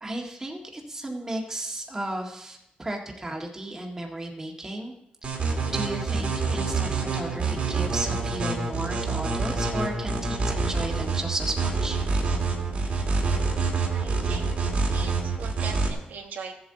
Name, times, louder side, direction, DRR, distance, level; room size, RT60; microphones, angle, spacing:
voice 1, 0.0-4.9 5.7-12.0, right 1 dB, 20° right, 0 dB, 1.8 m, -34 dB
sound 1, 5.2-15.9, right 4 dB, 50° right, 2.2 m, -26 dB
voice 2, 13.9-14.6 14.9-16.6, right 5 dB, 90° right, 2 dB, 1.4 m, -40 dB
15.5 x 7.7 x 3.9 m, 0.79 s
wide cardioid pair, 130°, 3 cm